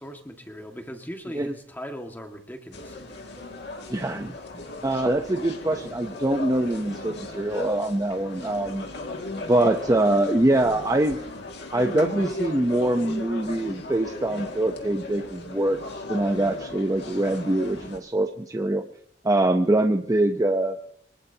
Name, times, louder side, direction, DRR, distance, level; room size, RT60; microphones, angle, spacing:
voice 1, 0.0-3.0, equal, 10° left, 4 dB, 1.8 m, -39 dB
sound 1, 2.7-18.0, left 2 dB, 65° left, 2.2 m, -37 dB
voice 2, 3.9-4.3 4.8-8.9 9.5-11.2 11.7-15.8 16.1-18.8 19.2-20.8, right 1 dB, 20° right, 4 dB, 0.7 m, -24 dB
25.0 x 20.0 x 2.8 m, 0.65 s
head